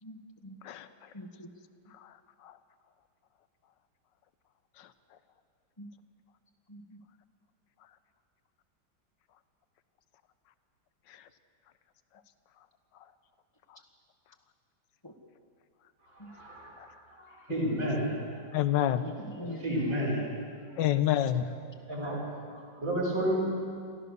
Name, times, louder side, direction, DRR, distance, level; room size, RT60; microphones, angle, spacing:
voice 1, 0.0-0.6 1.1-1.5 5.8-5.9 6.7-7.0 15.0-15.1 16.2-16.3 19.0-19.7, left 1 dB, 15° left, 4 dB, 1.6 m, -44 dB
voice 2, 0.6-1.1 1.9-2.6 4.7-5.2 7.8-8.0 11.1-11.3 12.1-12.2 12.6-12.7 12.9-13.1 13.7-13.8 16.8-16.9 18.5-19.1 20.8-21.5, left 11 dB, 75° left, 12 dB, 1.5 m, -31 dB
voice 3, 16.1-16.8 17.2-18.4 19.5-20.3 21.9-23.4, right 1 dB, 70° right, -6 dB, 6.4 m, -31 dB
29.5 x 13.5 x 6.8 m, 2.3 s
omnidirectional pair, 2.0 m